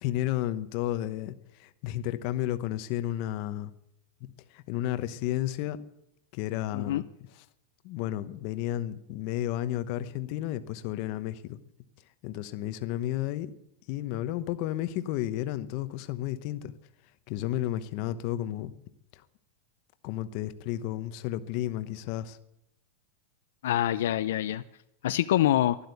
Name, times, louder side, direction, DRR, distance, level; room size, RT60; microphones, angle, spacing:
voice 1, 0.0-3.7 4.5-5.8 6.3-7.0 7.3-7.4 7.8-11.6 12.2-13.5 13.9-16.7 17.3-18.7 19.1-19.2 20.0-22.4, left 13 dB, 45° left, 12 dB, 1.0 m, -32 dB
voice 2, 23.6-24.6 25.0-25.8, left 12 dB, 80° left, 11 dB, 0.6 m, -25 dB
12.0 x 11.5 x 8.3 m, 0.79 s
supercardioid pair, 160°, 0 cm